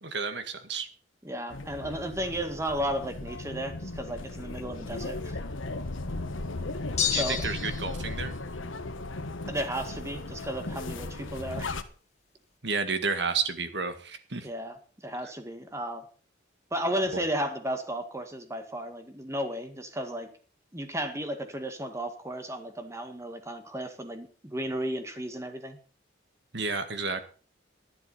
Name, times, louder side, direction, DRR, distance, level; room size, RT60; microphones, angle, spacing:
voice 1, 0.0-0.9 7.0-8.3 12.6-14.5 17.1-17.2 26.5-27.2, right 4 dB, 60° right, 10 dB, 1.8 m, -31 dB
voice 2, 1.2-5.4 7.1-7.4 9.5-11.8 14.4-14.8 15.0-16.1 16.7-20.3 20.7-25.8, right 1 dB, 15° right, 7 dB, 1.9 m, -34 dB
sound 1, 1.5-11.8, left 2 dB, 90° left, 1.3 m, -36 dB
sound 2, 7.0-7.9, left 9 dB, 35° left, 2.0 m, -29 dB
12.0 x 11.0 x 5.7 m, 0.40 s
head